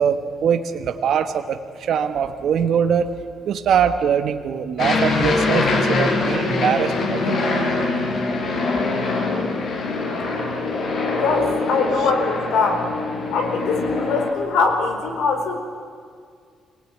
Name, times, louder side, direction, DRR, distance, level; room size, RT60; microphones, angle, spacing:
voice 1, 0.0-3.1 3.5-7.5 9.8-9.9 12.0-12.1, right 7 dB, 70° right, 8 dB, 1.3 m, -22 dB
Aircraft, 4.8-14.3, left 3 dB, 65° left, 4.9 m, -23 dB
voice 2, 11.1-12.9 13.3-15.6, left 4 dB, 85° left, 4 dB, 4.5 m, -22 dB
25.5 x 19.0 x 9.3 m, 2.1 s
cardioid pair, 90°, 0 cm